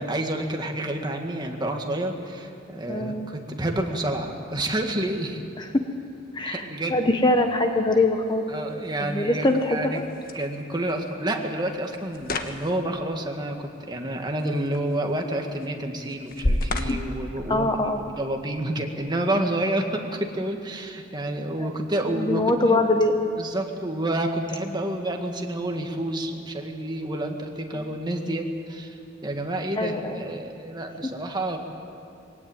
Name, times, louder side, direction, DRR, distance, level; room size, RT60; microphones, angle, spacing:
voice 1, 0.0-5.4 6.5-7.0 8.5-10.0 10.3-17.7 18.0-22.8 23.4-31.6, right 1 dB, 20° right, 3 dB, 1.8 m, -29 dB
voice 2, 2.9-3.3 5.6-5.8 6.3-8.5 9.0-10.0 16.9-17.0 17.5-18.0 21.6-21.7 22.1-23.1 27.7-27.8 29.8-30.2, left 2 dB, 20° left, 5 dB, 1.0 m, -23 dB
sound 1, 7.3-18.3, left 1 dB, 45° left, 1.3 m, -35 dB
22.5 x 17.5 x 9.0 m, 2.7 s
head